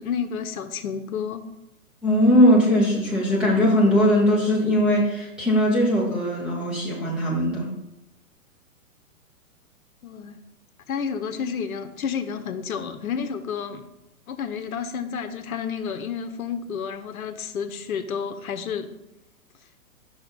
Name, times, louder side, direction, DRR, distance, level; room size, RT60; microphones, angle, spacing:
voice 1, 0.0-1.4 10.0-10.4 10.9-13.9 14.3-19.0, left 7 dB, 75° left, 10 dB, 0.7 m, -30 dB
voice 2, 2.0-7.7, equal, ahead, -5 dB, 0.4 m, -20 dB
5.6 x 4.1 x 4.5 m, 0.87 s
figure-of-eight pair, 120°, 43 cm